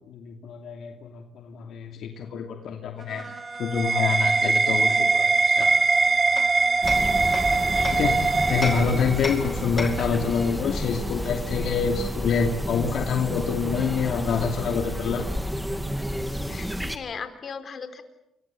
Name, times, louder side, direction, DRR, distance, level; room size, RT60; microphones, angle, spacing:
voice 1, 0.0-3.3 3.6-5.3 5.6-5.7 7.9-8.2 8.5-15.3, left 6 dB, 70° left, 5 dB, 2.6 m, -26 dB
sound 1, 3.0-9.5, right 3 dB, 30° right, 2.1 m, -22 dB
Hammer, 5.6-8.1 8.6-10.2, left 2 dB, 20° left, 4.6 m, -35 dB
sound 2, 6.8-17.0, equal, ahead, 2.5 m, -31 dB
voice 2, 16.5-18.0, left 6 dB, 50° left, 9 dB, 4.2 m, -38 dB
28.5 x 23.5 x 8.9 m, 0.82 s
cardioid pair, 90°, 0 cm